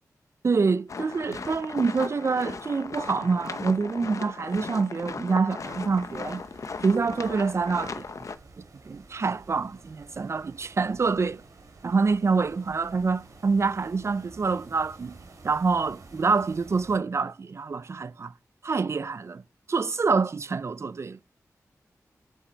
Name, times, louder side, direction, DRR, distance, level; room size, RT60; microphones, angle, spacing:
voice 1, 0.4-6.4 6.8-8.1 8.9-11.4 11.8-15.2 15.4-18.3 18.6-19.4 19.7-21.2, right 4 dB, 50° right, 0.5 m, -26 dB
sound 1, 0.9-8.4, left 4 dB, 60° left, 0.7 m, -37 dB
sound 2, 5.6-17.0, right 3 dB, 65° right, 3.0 m, -50 dB
9.1 x 7.4 x 3.9 m
wide cardioid pair, 90°, 6 cm